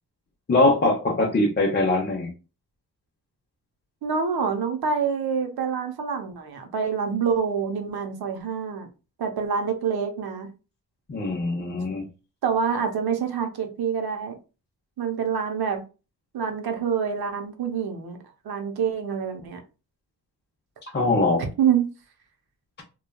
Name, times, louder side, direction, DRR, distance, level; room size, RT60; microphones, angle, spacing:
voice 1, 0.5-2.3 11.1-12.1 20.9-21.4, left 2 dB, 25° left, 0.7 m, -22 dB
voice 2, 4.0-8.9 9.2-10.5 12.4-14.3 15.0-15.8 16.3-18.2 18.4-19.6 21.6-21.9, right 6 dB, 65° right, 0.8 m, -26 dB
3.0 x 2.3 x 2.2 m
cardioid pair, 75°, 39 cm